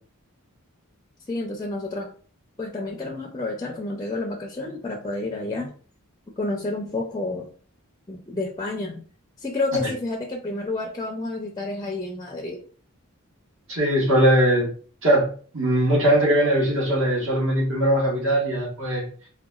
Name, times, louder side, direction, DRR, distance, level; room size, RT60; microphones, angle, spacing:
voice 1, 1.3-2.1 2.6-5.7 6.4-7.5 8.1-9.0 9.4-12.6, left 2 dB, 20° left, 1 dB, 0.4 m, -30 dB
voice 2, 13.7-14.7 15.0-15.3 15.5-19.0, right 1 dB, 65° right, -4 dB, 1.4 m, -20 dB
3.8 x 2.3 x 2.3 m, 0.43 s
head